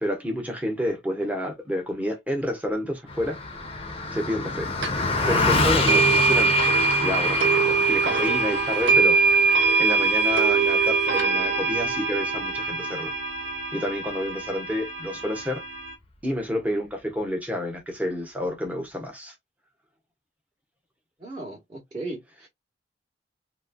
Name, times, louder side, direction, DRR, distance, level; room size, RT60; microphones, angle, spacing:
voice 1, 0.0-3.4 4.1-4.7 5.3-6.6 7.0-9.2 9.8-13.1 13.7-15.6 16.2-19.3, left 1 dB, 10° right, 1.2 m, -29 dB
Car passing by, 3.1-12.7, left 3 dB, 30° left, 1.0 m, -28 dB
sound 1, 4.8-4.9 5.9-15.9, right 4 dB, 70° right, 1.0 m, -23 dB
voice 2, 21.2-22.5, right 2 dB, 25° right, 1.5 m, -36 dB
3.2 x 3.1 x 2.4 m
head